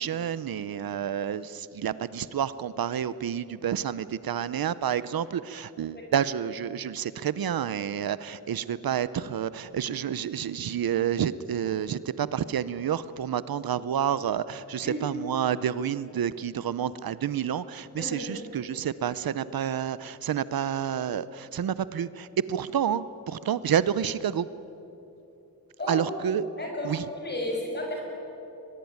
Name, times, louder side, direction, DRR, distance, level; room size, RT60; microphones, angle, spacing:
voice 1, 0.0-24.5 25.9-26.4 26.8-27.1, right 9 dB, 80° right, 16 dB, 0.8 m, -29 dB
voice 2, 18.0-18.5 25.8-26.1 26.6-28.0, left 1 dB, 30° left, 0 dB, 6.8 m, -33 dB
22.5 x 22.0 x 9.5 m, 2.9 s
wide cardioid pair, 150°, 35 cm